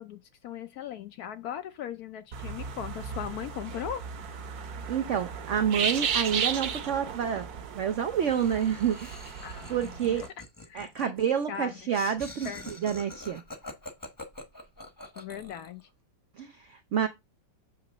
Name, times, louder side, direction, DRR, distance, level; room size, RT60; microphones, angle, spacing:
voice 1, 0.0-4.0 9.4-10.3 10.7-11.1 11.5-11.7 12.4-12.6 15.2-15.9, left 9 dB, 70° left, 0.9 m, -39 dB
sound 1, 2.3-10.3, right 7 dB, 60° right, 1.3 m, -34 dB
voice 2, 4.7-7.5 7.8-9.1 9.7-10.3 10.7-13.4 16.4-17.1, right 8 dB, 80° right, 0.6 m, -28 dB
Laughter, 8.2-15.8, left 2 dB, 15° left, 0.8 m, -45 dB
7.6 x 3.0 x 6.0 m
omnidirectional pair, 2.0 m